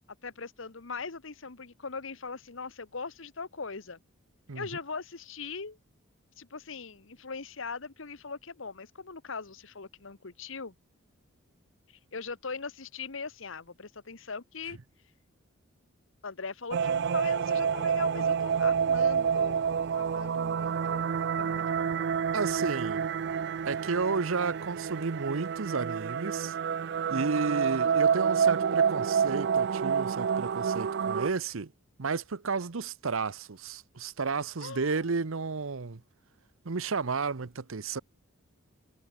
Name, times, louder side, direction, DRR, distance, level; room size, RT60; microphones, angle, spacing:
voice 1, 0.2-4.0 4.5-5.8 6.4-10.7 11.9-14.8 16.2-19.7 20.0-21.0 21.4-22.0 34.6-35.1, left 4 dB, 65° left, 1.2 m, -40 dB
sound 1, 16.7-31.3, right 7 dB, 55° right, 0.4 m, -28 dB
voice 2, 22.3-23.1 23.7-26.5 27.1-31.7 32.0-36.0 36.6-38.0, right 4 dB, 75° right, 0.8 m, -32 dB
head